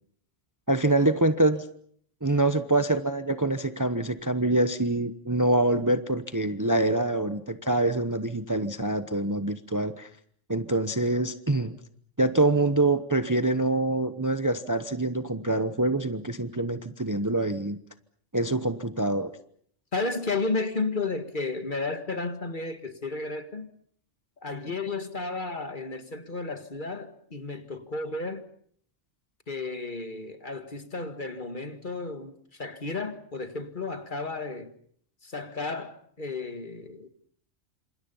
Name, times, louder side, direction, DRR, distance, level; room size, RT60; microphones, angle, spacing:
voice 1, 0.7-1.7 2.2-10.1 10.5-11.8 12.2-17.8 18.3-19.3, right 2 dB, 15° right, 0.9 m, -25 dB
voice 2, 19.9-23.7 24.4-28.4 29.5-34.7 35.2-37.1, left 3 dB, 40° left, 1.9 m, -33 dB
28.5 x 27.0 x 5.6 m
omnidirectional pair, 1.3 m